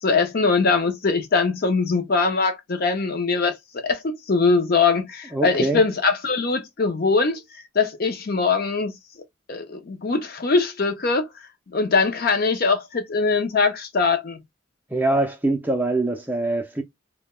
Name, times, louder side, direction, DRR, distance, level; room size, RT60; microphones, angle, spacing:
voice 1, 0.0-8.9 9.5-11.3 11.7-14.4, left 4 dB, 45° left, 0.5 m, -22 dB
voice 2, 5.3-5.8 14.9-16.8, right 2 dB, 10° right, 0.4 m, -23 dB
3.2 x 2.1 x 2.2 m
head